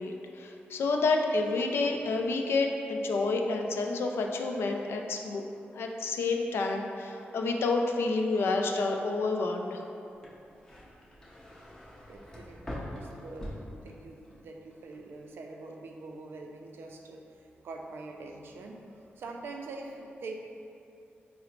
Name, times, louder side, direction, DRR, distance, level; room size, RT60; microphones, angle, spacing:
voice 1, 0.0-5.4 5.7-9.8, left 3 dB, 85° left, 3 dB, 0.3 m, -29 dB
sound 1, 10.1-14.4 14.7-15.3, equal, 15° left, 0.5 m, -43 dB
voice 2, 12.1-20.3, right 3 dB, 80° right, 1 dB, 0.4 m, -44 dB
3.8 x 2.0 x 4.3 m, 2.6 s
wide cardioid pair, 130°, 4 cm